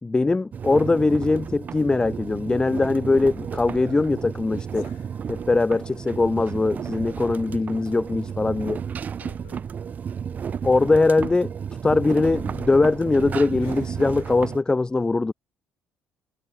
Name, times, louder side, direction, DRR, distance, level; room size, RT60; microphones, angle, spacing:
voice 1, 0.0-4.9 5.3-8.8 10.6-11.5 11.8-15.3, left 3 dB, 20° left, 0.9 m, -21 dB
sound 1, 0.5-14.6, right 7 dB, 50° right, 0.6 m, -33 dB
voice 2, 4.8-5.4 9.1-9.6 13.6-14.3, left 38 dB, 85° left, 7.3 m, -51 dB
hypercardioid pair, 60°, 4 cm